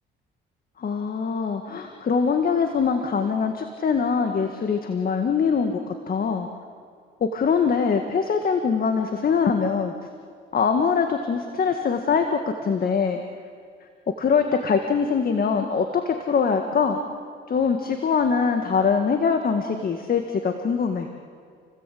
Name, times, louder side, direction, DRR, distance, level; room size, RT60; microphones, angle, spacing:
voice 1, 0.8-6.5 7.2-9.9 10.5-13.2 14.2-17.0 17.5-21.1, left 5 dB, 50° left, 5 dB, 1.8 m, -23 dB
29.5 x 17.5 x 8.6 m, 2.1 s
cardioid pair, 90°, 20 cm